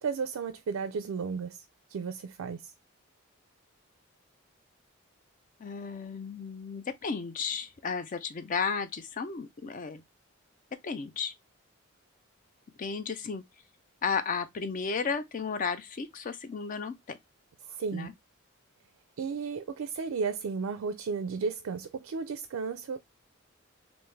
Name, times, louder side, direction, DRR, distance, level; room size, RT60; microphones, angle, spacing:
voice 1, 0.0-1.6 1.9-2.7 17.7-18.1 19.2-23.0, right 5 dB, 90° right, 0.4 m, -34 dB
voice 2, 5.6-10.0 10.8-11.3 12.8-13.4 14.0-17.2 17.9-18.1, left 5 dB, 40° left, 0.4 m, -33 dB
3.5 x 2.6 x 3.1 m
head